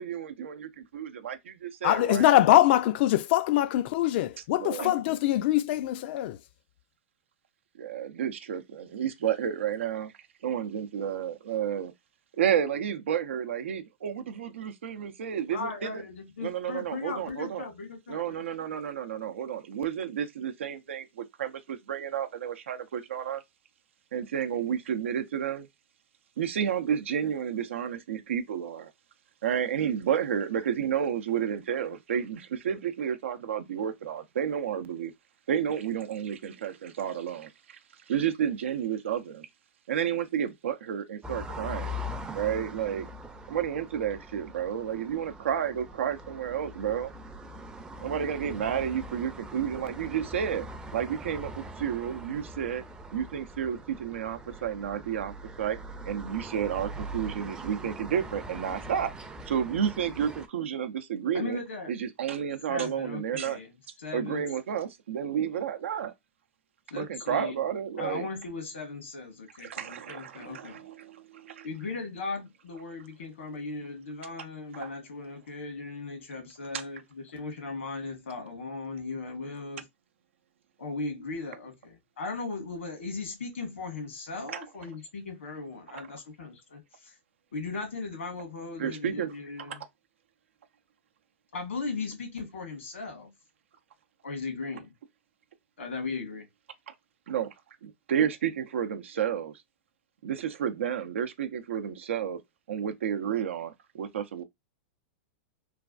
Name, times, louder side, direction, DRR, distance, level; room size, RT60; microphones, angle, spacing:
voice 1, 0.0-2.3 4.6-4.9 7.8-10.1 10.4-11.9 12.4-16.0 16.4-17.6 18.1-23.4 24.1-25.7 26.4-28.9 29.4-35.1 35.5-37.5 38.1-39.5 39.9-42.0 42.4-43.1 43.5-47.1 48.0-50.6 50.9-51.5 51.8-52.8 53.1-55.8 56.1-59.1 59.5-61.6 61.9-63.6 64.1-66.1 67.0-68.3 69.6-71.7 74.8-74.9 84.5-84.6 88.8-89.3 89.7-89.8 96.9-97.0 97.3-97.5 97.8-99.6 100.2-102.4 102.7-104.4, right 8 dB, 85° right, 0.5 m, -31 dB
voice 2, 1.8-6.4, left 14 dB, 60° left, 0.4 m, -23 dB
voice 3, 15.5-18.4 61.3-61.9 62.7-64.4 66.9-67.6 68.0-70.8 71.6-79.9 80.8-87.1 87.5-89.8 91.5-93.3 94.2-94.9 95.8-96.4, left 3 dB, 90° left, 1.4 m, -37 dB
sound 1, 41.2-60.5, equal, 10° right, 0.5 m, -42 dB
3.2 x 2.3 x 2.3 m
hypercardioid pair, 120°, 7 cm